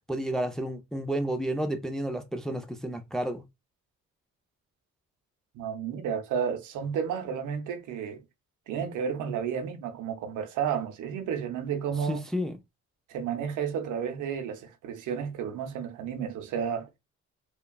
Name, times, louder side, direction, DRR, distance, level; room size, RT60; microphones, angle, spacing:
voice 1, 0.1-3.4 12.0-12.5, right 1 dB, ahead, 0.3 m, -31 dB
voice 2, 5.5-8.2 8.7-12.3 13.1-16.9, right 7 dB, 85° right, 0.7 m, -32 dB
3.1 x 2.3 x 2.2 m
cardioid pair, 90°, 30 cm